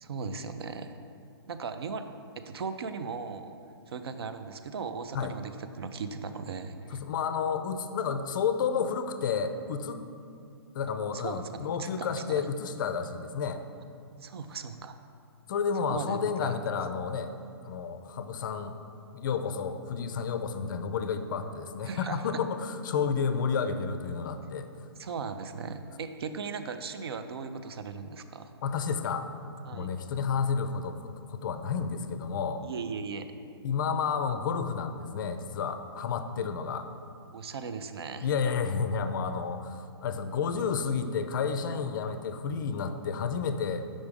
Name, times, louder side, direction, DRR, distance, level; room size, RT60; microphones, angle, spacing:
voice 1, 0.0-0.9 1.5-2.0 2.4-3.6 3.9-5.5 5.8-7.0 11.1-11.4 11.8-12.5 14.2-15.0 15.9-16.5 21.8-22.2 25.0-28.5 29.7-29.9 32.6-33.3 37.3-38.3, right 5 dB, 70° right, 9 dB, 0.4 m, -37 dB
voice 2, 6.9-10.0 10.7-13.6 15.5-17.3 17.6-18.7 19.1-24.7 28.6-29.3 29.7-32.6 33.6-36.9 38.2-43.9, left 6 dB, 50° left, 9 dB, 0.4 m, -31 dB
5.2 x 3.5 x 5.1 m, 2.4 s
hypercardioid pair, 135°, 14 cm